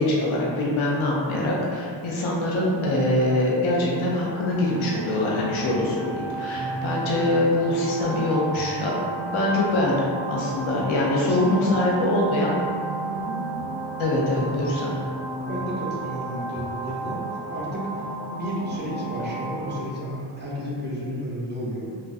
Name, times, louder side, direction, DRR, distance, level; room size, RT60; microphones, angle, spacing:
voice 1, 0.0-12.6 14.0-14.9, left 1 dB, 80° left, -4 dB, 0.6 m, -24 dB
sound 1, 4.1-19.8, right 2 dB, 25° left, 1.0 m, -33 dB
voice 2, 11.2-11.9 13.1-13.4 15.5-17.2 17.5-21.9, equal, 20° right, -6 dB, 0.6 m, -32 dB
2.4 x 2.1 x 2.5 m, 2.3 s
cardioid pair, 70°, 47 cm